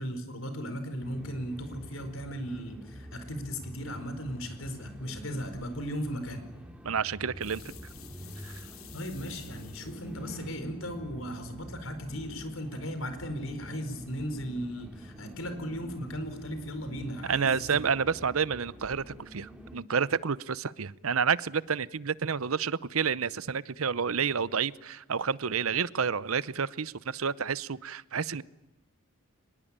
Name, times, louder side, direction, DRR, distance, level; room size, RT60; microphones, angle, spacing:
voice 1, 0.0-6.5 8.9-17.8, equal, 70° left, 9 dB, 4.7 m, -37 dB
sound 1, 1.0-19.8, equal, 5° right, 2.6 m, -47 dB
voice 2, 6.8-7.6 8.4-8.5 17.3-28.4, right 6 dB, 80° right, 19 dB, 0.8 m, -29 dB
sound 2, 7.4-10.2, left 11 dB, 85° left, 3.3 m, -52 dB
24.5 x 21.0 x 8.8 m, 1.0 s
head